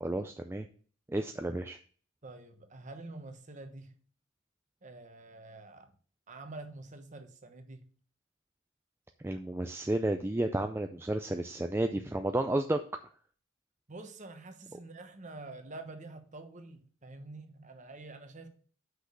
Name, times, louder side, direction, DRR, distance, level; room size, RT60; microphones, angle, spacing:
voice 1, 0.0-0.7 1.1-1.8 9.2-12.8, right 1 dB, 10° right, 0.3 m, -32 dB
voice 2, 2.2-4.0 4.8-5.9 6.3-7.8 13.9-18.5, right 2 dB, 35° right, 1.1 m, -47 dB
6.1 x 5.2 x 6.7 m
head